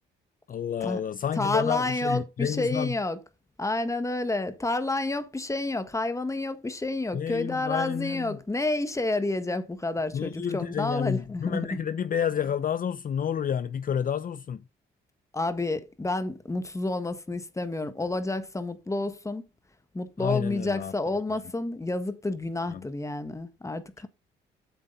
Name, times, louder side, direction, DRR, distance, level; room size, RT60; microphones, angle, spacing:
voice 1, 0.5-2.9 7.1-8.4 10.1-14.6 20.2-20.9 21.3-21.4 22.7-22.9, left 8 dB, 45° left, 0.6 m, -30 dB
voice 2, 1.4-3.2 3.6-11.7 15.3-19.4 19.9-24.1, left 2 dB, 15° left, 1.5 m, -29 dB
8.4 x 7.4 x 3.9 m
cardioid pair, 90°, 20 cm